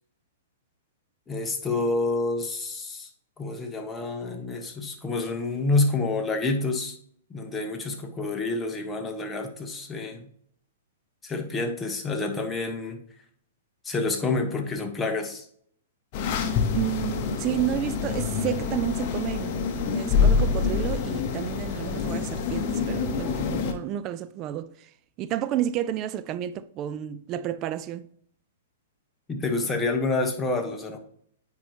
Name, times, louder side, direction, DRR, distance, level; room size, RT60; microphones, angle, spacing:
voice 1, 1.3-3.1 3.4-7.0 7.3-10.3 11.2-13.0 13.8-15.5 29.3-31.0, left 3 dB, 15° left, 1.1 m, -28 dB
sound 1, 16.1-23.7, left 5 dB, 45° left, 1.0 m, -26 dB
voice 2, 16.7-19.6 19.9-24.9 25.2-28.1, right 11 dB, 35° right, 0.4 m, -31 dB
9.3 x 4.5 x 2.9 m
hypercardioid pair, 130°, 0 cm